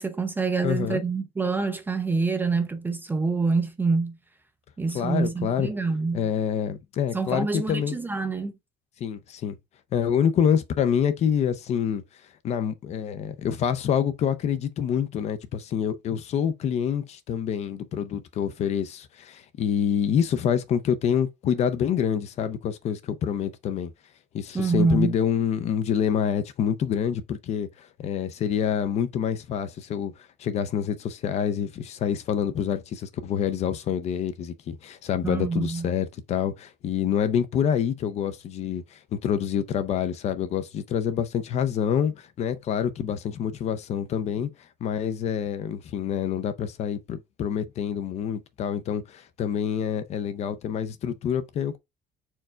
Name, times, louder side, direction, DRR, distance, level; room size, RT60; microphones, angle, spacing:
voice 1, 0.0-4.2 4.8-6.3 7.1-8.5 24.5-25.1 35.2-35.9, right 4 dB, 10° right, 0.4 m, -26 dB
voice 2, 0.6-1.0 4.9-5.7 6.1-7.9 9.0-9.6 9.9-12.0 12.4-23.9 24.3-30.1 30.4-44.5 44.8-51.8, left 8 dB, 40° left, 0.6 m, -27 dB
4.5 x 2.4 x 4.4 m
cardioid pair, 165°, 16 cm